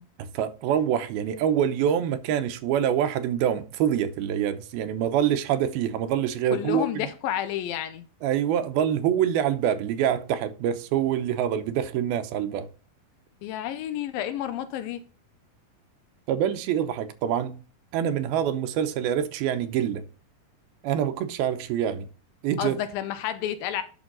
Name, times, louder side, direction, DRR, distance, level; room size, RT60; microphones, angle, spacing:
voice 1, 0.2-7.1 8.2-12.7 16.3-17.6 17.9-20.0 20.8-22.1 22.4-22.8, right 9 dB, 85° right, 2.7 m, -25 dB
voice 2, 6.5-8.1 13.4-15.0 22.6-23.8, left 11 dB, 80° left, 2.5 m, -30 dB
11.0 x 6.2 x 4.0 m
omnidirectional pair, 4.3 m